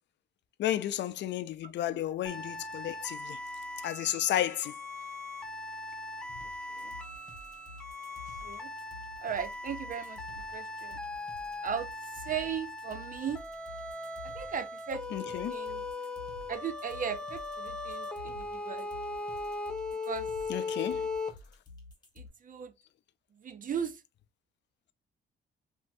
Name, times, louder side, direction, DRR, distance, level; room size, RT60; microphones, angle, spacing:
voice 1, 0.6-3.4 3.8-4.7 15.1-15.5 20.5-21.1, left 12 dB, 65° left, 0.4 m, -32 dB
voice 2, 1.6-2.0 6.7-6.9 8.3-8.7 9.2-11.0 11.6-11.9 12.1-13.4 14.2-15.8 16.5-19.0 20.0-20.3 22.2-22.7 23.3-24.0, right 7 dB, 45° right, 0.5 m, -37 dB
sound 1, 2.3-21.3, left 3 dB, 5° left, 0.6 m, -39 dB
sound 2, 6.3-22.3, left 2 dB, 20° left, 1.4 m, -51 dB
3.1 x 2.7 x 2.6 m
cardioid pair, 90°, 20 cm